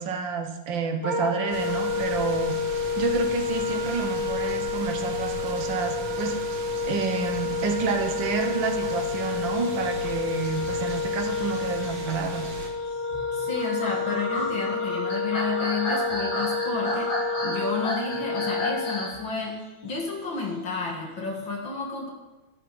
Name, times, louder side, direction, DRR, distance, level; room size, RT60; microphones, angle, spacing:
voice 1, 0.0-2.6 3.0-6.4 6.8-12.5, right 5 dB, 55° right, 5 dB, 1.5 m, -29 dB
Wind instrument woodwind instrument, 1.0-19.1, left 4 dB, 5° left, 2.6 m, -29 dB
sound 1, 1.5-12.7, right 4 dB, 80° right, 2.8 m, -39 dB
sound 2, 9.5-19.2, left 1 dB, 75° left, 5.1 m, -33 dB
voice 2, 13.3-22.1, left 4 dB, 45° left, 0 dB, 2.2 m, -31 dB
13.5 x 11.0 x 4.9 m, 1.1 s
omnidirectional pair, 3.3 m